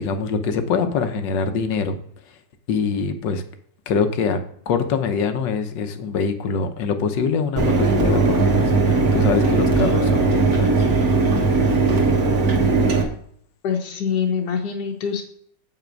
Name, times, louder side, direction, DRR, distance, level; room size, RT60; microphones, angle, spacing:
voice 1, 0.0-2.0 2.7-3.4 3.9-4.4 4.7-10.8, left 5 dB, 85° left, 8 dB, 1.5 m, -24 dB
Mechanisms, 7.6-13.0, right 3 dB, 55° right, 1.8 m, -18 dB
voice 2, 13.6-15.2, left 7 dB, 70° left, 0 dB, 1.4 m, -24 dB
7.7 x 5.8 x 5.2 m, 0.63 s
omnidirectional pair, 1.9 m